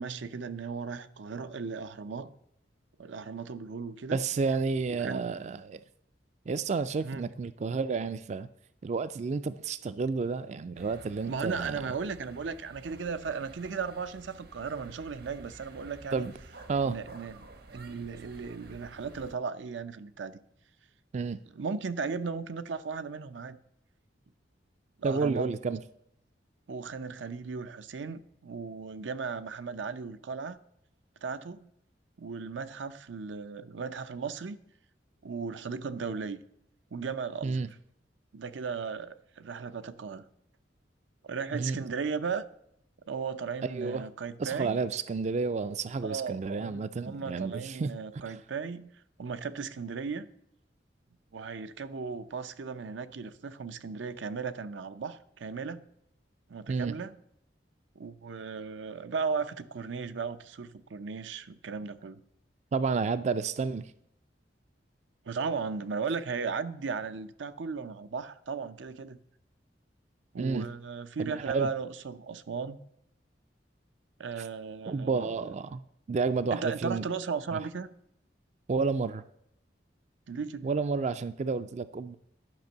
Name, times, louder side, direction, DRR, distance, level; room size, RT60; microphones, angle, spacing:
voice 1, 0.0-2.3 3.0-4.2 5.0-5.3 7.0-7.3 11.3-16.3 16.9-17.4 17.7-20.4 21.5-23.6 25.0-25.5 26.7-30.6 31.2-31.7 32.2-34.6 35.2-36.4 36.9-37.6 38.3-40.2 41.2-42.4 43.1-44.8 46.0-48.9 49.2-50.3 51.3-55.9 56.5-57.1 58.0-62.2 65.2-69.2 70.3-72.8 74.2-75.3 76.5-77.9 80.3-80.7, right 5 dB, 85° right, 0.6 m, -36 dB
voice 2, 4.1-5.8 6.5-8.5 8.8-11.8 16.1-16.3 16.7-17.0 21.1-21.4 25.0-25.8 37.4-37.7 41.5-41.8 43.7-44.0 44.4-47.9 56.7-56.9 62.7-63.9 70.4-70.7 71.2-71.7 74.4-74.5 74.9-75.8 76.1-77.1 78.7-79.2 80.6-82.2, right 4 dB, 40° right, 0.3 m, -30 dB
sound 1, 10.7-19.3, right 2 dB, 55° right, 0.9 m, -51 dB
10.5 x 5.2 x 6.7 m
head